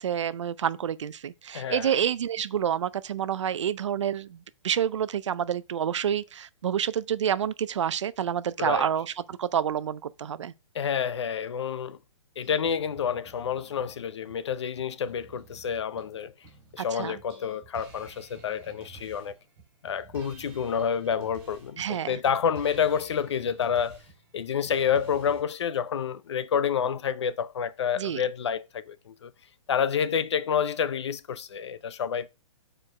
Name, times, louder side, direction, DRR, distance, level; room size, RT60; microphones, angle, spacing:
voice 1, 0.0-10.5 16.8-17.2 21.8-22.2 28.0-28.2, right 9 dB, 65° right, 0.5 m, -28 dB
voice 2, 1.5-1.9 8.6-8.9 10.7-12.0 12.4-16.3 16.7-19.3 19.8-24.0 24.3-29.3 29.7-32.3, left 7 dB, 60° left, 0.5 m, -28 dB
sound 1, 12.4-16.8 17.1-25.4, right 5 dB, 25° right, 2.4 m, -51 dB
6.6 x 4.5 x 4.9 m
hypercardioid pair, 180°, 16 cm